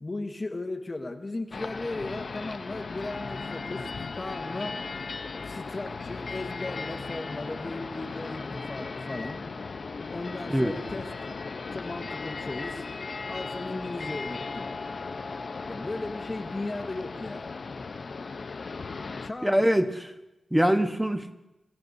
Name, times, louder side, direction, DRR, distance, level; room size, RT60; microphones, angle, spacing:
voice 1, 0.0-4.8 5.4-9.4 10.1-11.1 11.7-12.8 13.3-14.7 15.7-17.5 19.2-19.9, left 2 dB, 35° left, 5 dB, 1.0 m, -36 dB
sound 1, 1.5-19.3, left 4 dB, 65° left, 0.6 m, -37 dB
voice 2, 19.4-20.1 20.5-21.3, equal, 10° right, 7 dB, 0.9 m, -23 dB
23.5 x 13.5 x 2.7 m, 0.95 s
wide cardioid pair, 80°, 0 cm